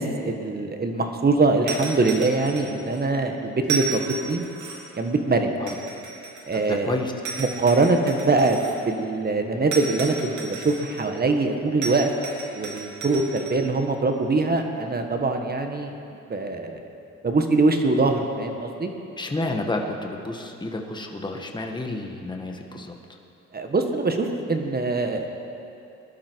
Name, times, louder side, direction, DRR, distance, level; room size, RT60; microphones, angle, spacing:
voice 1, 0.0-4.4 4.9-5.5 6.5-7.0 7.4-12.1 12.5-16.0 16.3-16.8 17.2-18.9 23.5-25.4, right 3 dB, 30° right, 5 dB, 1.6 m, -23 dB
sound 1, 1.7-3.0 3.6-5.0 5.7-6.8 7.2-8.8 9.7-11.1 11.8-13.6, right 4 dB, 75° right, 2.8 m, -34 dB
voice 2, 6.7-7.1 19.2-22.9, left 2 dB, 15° left, 2 dB, 1.5 m, -30 dB
20.5 x 11.5 x 4.7 m, 2.8 s
cardioid pair, 90°, 30 cm